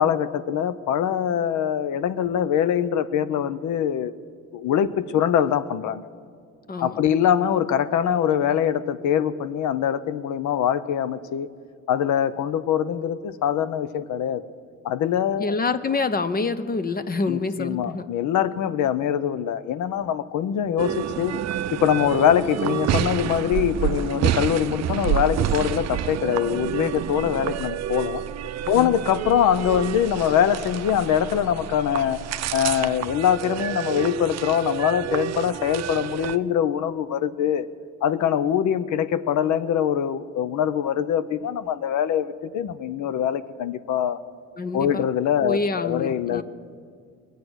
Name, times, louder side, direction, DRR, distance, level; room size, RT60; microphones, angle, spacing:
voice 1, 0.0-4.1 4.5-6.0 6.8-11.5 11.9-14.4 14.8-15.6 17.3-21.4 21.7-28.2 28.7-32.2 32.5-37.7 38.0-44.2 44.7-46.4, left 9 dB, 75° left, 15 dB, 0.7 m, -23 dB
voice 2, 15.4-18.1 28.7-29.0 44.6-45.0 45.4-46.4, left 3 dB, 30° left, 12 dB, 0.7 m, -26 dB
sound 1, 20.8-36.4, right 11 dB, 60° right, 0.5 m, -28 dB
20.5 x 8.4 x 6.2 m, 2.2 s
cardioid pair, 90°, 30 cm